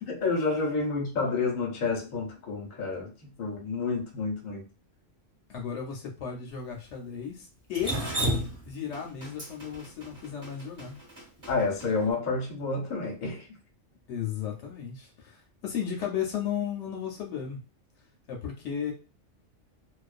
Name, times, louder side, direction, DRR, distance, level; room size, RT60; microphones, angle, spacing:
voice 1, 0.2-3.1 3.4-4.6 11.5-13.5, left 4 dB, 45° left, 0.7 m, -29 dB
voice 2, 5.5-8.0 8.6-11.0 14.1-17.6 18.3-18.9, left 8 dB, 75° left, 0.9 m, -34 dB
Drip, 7.7-11.9, right 1 dB, 25° right, 0.9 m, -32 dB
2.3 x 2.2 x 2.4 m
omnidirectional pair, 1.3 m